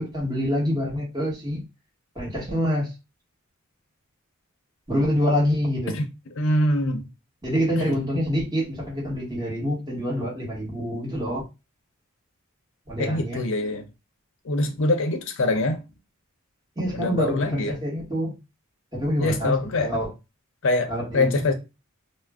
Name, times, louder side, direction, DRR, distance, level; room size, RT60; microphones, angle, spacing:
voice 1, 0.0-1.6 2.1-2.9 4.9-6.0 7.4-11.4 12.9-13.4 16.8-18.3 18.9-20.1 20.9-21.5, equal, 20° right, 1.1 m, -26 dB
voice 2, 6.4-7.1 7.9-8.0 13.0-13.8 14.4-15.8 16.9-17.8 19.2-19.9 20.6-21.5, left 2 dB, 65° left, 0.6 m, -24 dB
2.4 x 2.0 x 3.4 m
head